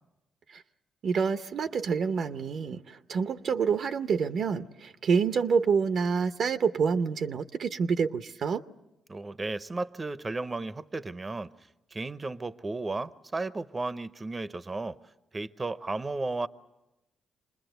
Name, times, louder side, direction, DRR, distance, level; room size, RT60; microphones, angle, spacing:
voice 1, 1.0-8.6, right 6 dB, 65° right, 0.8 m, -27 dB
voice 2, 9.1-11.5 11.9-15.0 15.3-16.5, right 3 dB, 30° right, 0.8 m, -34 dB
26.5 x 20.5 x 8.0 m
supercardioid pair, 60°, 0 cm